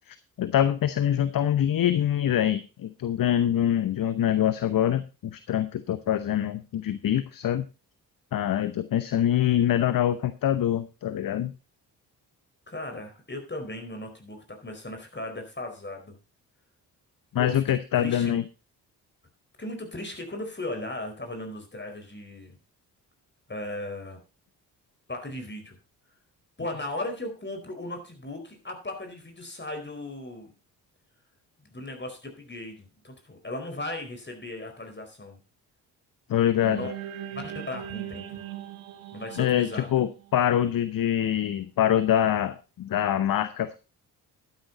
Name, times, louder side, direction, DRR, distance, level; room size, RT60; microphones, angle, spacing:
voice 1, 0.1-7.6 8.3-11.5 17.3-18.4 36.3-36.8 39.4-43.8, left 10 dB, 45° left, 14 dB, 0.9 m, -25 dB
voice 2, 12.7-16.2 17.4-18.4 19.6-22.6 23.5-24.2 25.1-25.8 26.6-30.5 31.7-35.4 36.6-36.9 37.3-38.4 39.1-39.9, left 2 dB, 20° left, 5 dB, 4.6 m, -37 dB
sound 1, 36.6-41.0, right 11 dB, 70° right, 1.3 m, -39 dB
11.5 x 10.0 x 4.0 m, 0.30 s
hypercardioid pair, 40°, 48 cm